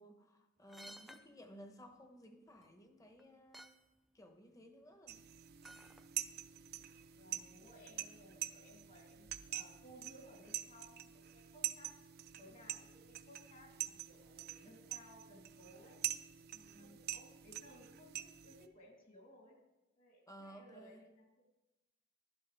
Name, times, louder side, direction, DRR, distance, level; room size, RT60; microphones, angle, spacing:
voice 1, 0.0-3.9 4.1-5.2 16.5-17.0 20.3-21.0, equal, 20° left, 5 dB, 1.0 m, -57 dB
sound 1, 0.7-1.3 2.6-2.7 3.2-3.3 3.5-3.8 5.6-6.1 6.5-6.6, right 1 dB, ahead, 0.4 m, -54 dB
sound 2, 5.1-18.7, right 12 dB, 55° right, 0.5 m, -46 dB
voice 2, 7.1-11.9 12.4-16.0 16.7-19.6 19.9-21.5, equal, 45° left, -1 dB, 3.1 m, -60 dB
12.0 x 11.5 x 3.4 m, 1.0 s
head